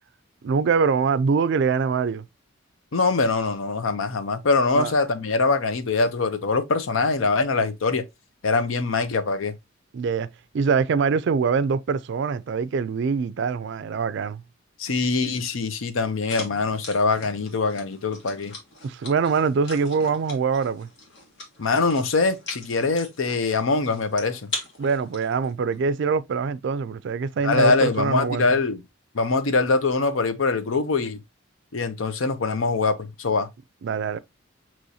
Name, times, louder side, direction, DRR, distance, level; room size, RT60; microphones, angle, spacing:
voice 1, 0.4-2.2 4.7-4.9 9.9-10.3 10.5-14.4 18.8-20.9 24.8-28.5 33.8-34.2, right 5 dB, 60° right, 0.3 m, -24 dB
voice 2, 2.9-8.0 8.4-9.5 14.8-18.5 21.6-24.5 27.4-28.8 29.1-31.2 31.7-33.5, left 3 dB, 75° left, 0.6 m, -23 dB
sound 1, 16.3-25.8, left 3 dB, 60° left, 1.5 m, -40 dB
6.2 x 3.0 x 2.7 m
head